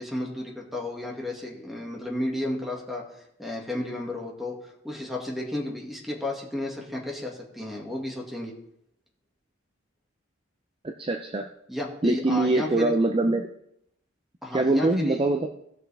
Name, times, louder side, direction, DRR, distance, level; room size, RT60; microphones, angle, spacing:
voice 1, 0.0-8.5 11.7-13.0 14.4-15.3, left 1 dB, ahead, -1 dB, 2.0 m, -33 dB
voice 2, 11.0-11.4 12.0-13.5 14.5-15.5, right 2 dB, 25° right, 4 dB, 0.5 m, -23 dB
17.0 x 6.1 x 3.4 m, 0.76 s
head